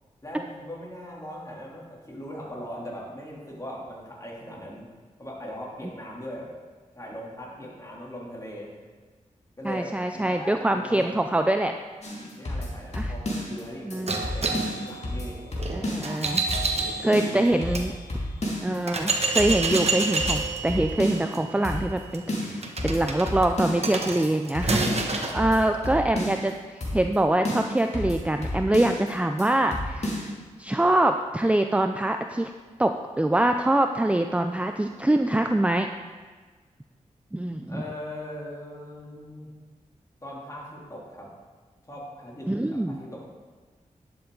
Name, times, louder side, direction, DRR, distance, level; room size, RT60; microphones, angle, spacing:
voice 1, 0.2-4.9 5.2-6.5 6.9-8.7 9.6-11.1 12.3-15.4 16.8-17.4 25.1-26.0 37.7-39.5 40.2-41.3 41.8-43.3, equal, 25° left, -4 dB, 3.2 m, -40 dB
voice 2, 9.6-11.7 12.9-13.1 13.8-14.2 15.7-16.4 17.0-17.9 18.6-30.3 30.6-32.5 32.8-35.9 37.3-37.8 42.5-43.0, right 1 dB, 10° right, 6 dB, 0.5 m, -24 dB
sound 1, 12.0-13.6 13.9-14.0 14.2-16.2 16.5-16.9 17.1-18.8 19.1-19.2 19.4-21.4 21.6-22.0 22.3-23.9 24.2-24.3 24.5-26.5 26.8-27.2 27.4-29.1 29.4-29.5 29.7-30.3, left 1 dB, 50° left, 2.6 m, -31 dB
sound 2, 14.1-17.9 18.4-18.5 18.9-25.4, right 3 dB, 50° right, 1.2 m, -29 dB
11.0 x 7.0 x 3.9 m, 1.4 s
cardioid pair, 45°, 14 cm